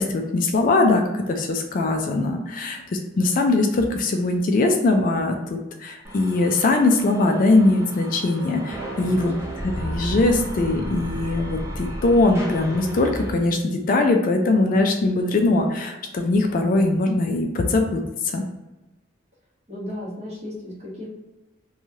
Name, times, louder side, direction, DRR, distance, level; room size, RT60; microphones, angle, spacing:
voice 1, 0.0-9.3 9.6-18.0 18.3-18.4, left 2 dB, 45° left, 4 dB, 0.3 m, -21 dB
sound 1, 6.0-13.3, right 1 dB, 15° right, 0.7 m, -33 dB
voice 2, 9.0-9.3 19.7-21.1, left 1 dB, 35° right, -6 dB, 1.1 m, -35 dB
3.0 x 2.3 x 2.7 m, 1.1 s
head